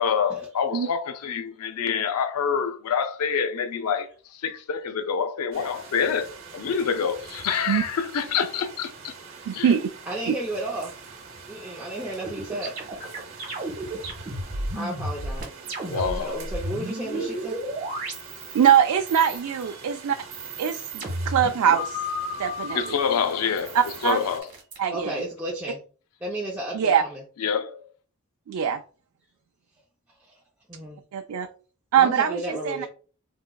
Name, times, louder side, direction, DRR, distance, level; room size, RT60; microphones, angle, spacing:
voice 1, 0.0-9.2 9.5-9.8 15.9-16.4 17.1-17.4 22.7-24.5 27.4-27.9, left 6 dB, 85° left, 0.4 m, -27 dB
sound 1, 5.5-24.4, right 5 dB, 60° right, 0.9 m, -44 dB
voice 2, 9.5-9.9 10.3-10.4 18.5-20.2 20.6-22.0 22.4-22.8 23.7-24.2 24.8-25.2 26.7-27.0 28.5-28.8 31.1-31.5 31.9-32.9, right 8 dB, 80° right, 0.3 m, -22 dB
voice 3, 10.1-10.9 11.5-12.7 13.9-14.1 14.7-15.6 15.9-17.6 24.9-25.8 26.2-27.2 30.2-30.4 30.7-31.0 32.0-32.9, right 1 dB, 10° right, 0.5 m, -33 dB
sound 2, 12.2-16.2 16.4-18.8 19.1-19.7 20.2-22.9 23.6-24.8, equal, 35° right, 1.3 m, -33 dB
3.6 x 2.9 x 2.2 m
head